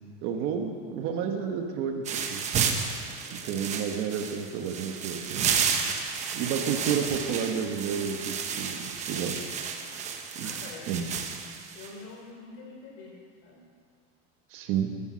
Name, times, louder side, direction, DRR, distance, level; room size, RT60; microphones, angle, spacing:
voice 1, 0.2-2.4 3.3-5.5 6.3-9.7 10.3-10.5 10.9-11.1 14.5-14.9, right 7 dB, 40° right, 4 dB, 1.3 m, -31 dB
sound 1, 2.1-11.9, right 7 dB, 25° right, 1.0 m, -32 dB
voice 2, 3.2-3.6 10.4-10.9 11.7-13.6, left 3 dB, 50° left, -1 dB, 4.8 m, -46 dB
14.5 x 13.0 x 6.3 m, 2.1 s
cardioid pair, 175°, 31 cm